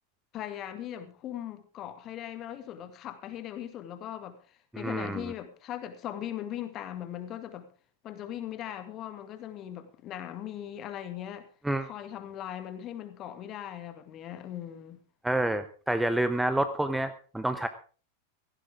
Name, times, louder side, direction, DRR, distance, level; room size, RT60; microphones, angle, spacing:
voice 1, 0.3-4.4 4.7-7.7 8.0-11.5 11.9-15.0, left 11 dB, 35° left, 2.0 m, -39 dB
voice 2, 4.7-5.3 11.6-11.9 15.2-17.7, right 1 dB, 5° right, 0.9 m, -28 dB
17.0 x 15.0 x 3.6 m
figure-of-eight pair, 90°, 0 cm